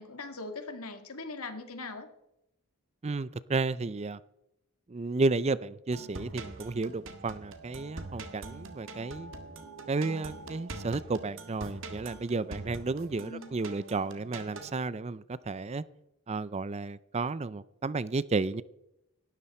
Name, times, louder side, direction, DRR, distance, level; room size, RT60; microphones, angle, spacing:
voice 1, 0.0-2.1 13.2-13.5, left 3 dB, 80° left, 7 dB, 2.1 m, -41 dB
voice 2, 3.0-4.2 4.9-9.3 9.9-15.8 16.3-18.6, right 3 dB, 30° right, 18 dB, 0.4 m, -32 dB
sound 1, 5.9-14.7, right 2 dB, 60° right, 1.9 m, -44 dB
18.0 x 12.5 x 4.3 m, 0.84 s
head